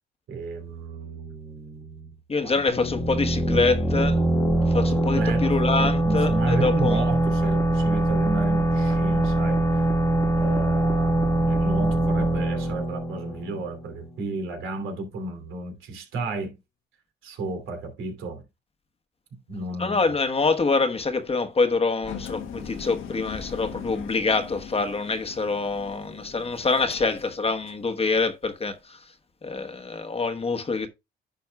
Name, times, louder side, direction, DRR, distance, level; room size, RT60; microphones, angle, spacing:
voice 1, 0.3-2.2 2.4-2.8 5.1-5.5 5.8-9.9 10.4-16.5 17.2-18.4 19.5-20.1, right 3 dB, 85° right, 2.7 m, -33 dB
voice 2, 2.3-4.2 4.7-7.1 19.8-29.0 29.4-30.9, left 4 dB, 30° left, 1.1 m, -25 dB
sound 1, 2.7-14.2, right 2 dB, 15° left, 1.4 m, -23 dB
Engine, 22.0-27.9, left 7 dB, 80° left, 1.3 m, -39 dB
10.5 x 6.1 x 2.3 m
cardioid pair, 90°, 20 cm